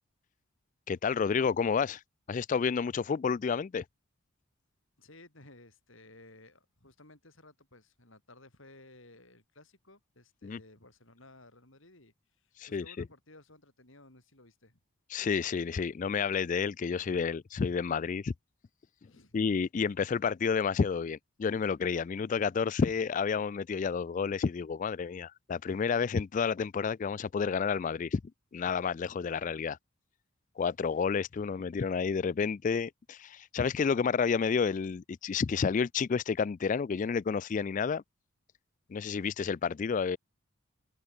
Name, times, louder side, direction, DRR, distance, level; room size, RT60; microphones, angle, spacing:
voice 1, 0.9-2.0 2.3-3.8 10.4-10.6 12.6-13.0 15.1-18.3 19.3-28.2 28.5-29.8 30.6-38.0 38.9-40.2, left 6 dB, 35° left, 0.3 m, -30 dB
voice 2, 5.0-14.8 19.0-19.3, left 2 dB, 65° left, 7.0 m, -57 dB
open air
head